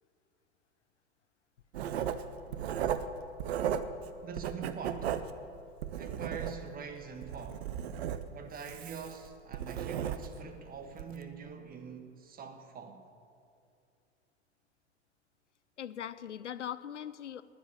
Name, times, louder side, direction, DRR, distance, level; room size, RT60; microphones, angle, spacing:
Writing, 1.7-4.1 4.3-6.8 7.2-10.5 10.9-11.1, right 9 dB, 65° right, 0.9 m, -35 dB
voice 1, 4.2-5.3 6.0-7.7 8.3-13.1, right 6 dB, 25° right, 1.5 m, -44 dB
voice 2, 15.8-17.4, left 10 dB, 80° left, 0.6 m, -40 dB
11.0 x 10.5 x 9.7 m
figure-of-eight pair, 90°, 35 cm